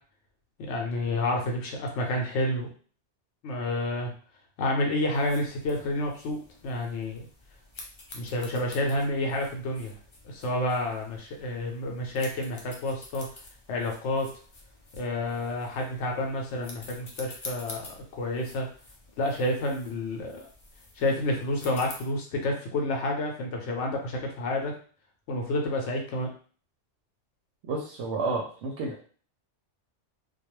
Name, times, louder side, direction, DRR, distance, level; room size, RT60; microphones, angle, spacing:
voice 1, 0.6-2.7 3.4-4.1 4.6-7.3 8.1-10.0 10.2-13.3 13.7-14.3 14.9-18.7 19.2-20.5 21.0-24.7 25.3-26.3, left 1 dB, 75° left, 1 dB, 0.9 m, -29 dB
sound 1, 5.1-22.0, left 2 dB, 50° left, 0.3 m, -48 dB
voice 2, 27.6-29.0, right 3 dB, 85° right, -1 dB, 0.9 m, -31 dB
2.3 x 2.2 x 3.0 m, 0.42 s
omnidirectional pair, 1.2 m